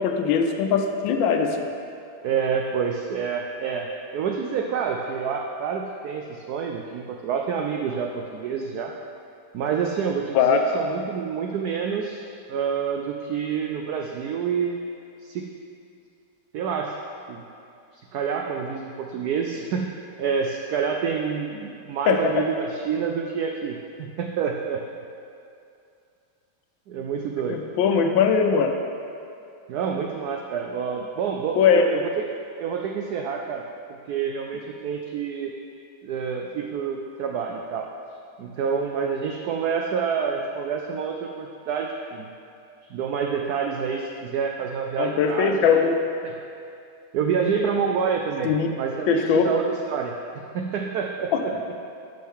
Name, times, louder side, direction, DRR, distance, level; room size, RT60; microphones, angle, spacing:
voice 1, 0.0-1.7 10.3-10.6 22.1-22.5 27.5-28.8 31.6-31.8 45.0-46.0 48.4-48.7 49.1-49.4 51.3-51.4, left 6 dB, 75° left, 4 dB, 1.3 m, -20 dB
voice 2, 2.2-3.9 4.1-8.9 9.5-12.2 12.5-14.8 15.2-15.5 16.5-17.0 17.3-17.4 17.9-19.9 20.2-24.8 26.9-27.6 29.7-32.2 32.6-33.6 34.1-35.5 36.0-37.9 38.4-42.3 42.9-45.8 46.2-46.3 47.1-51.5, right 6 dB, 80° right, 2 dB, 0.8 m, -28 dB
11.5 x 6.4 x 3.6 m, 2.5 s
omnidirectional pair, 2.2 m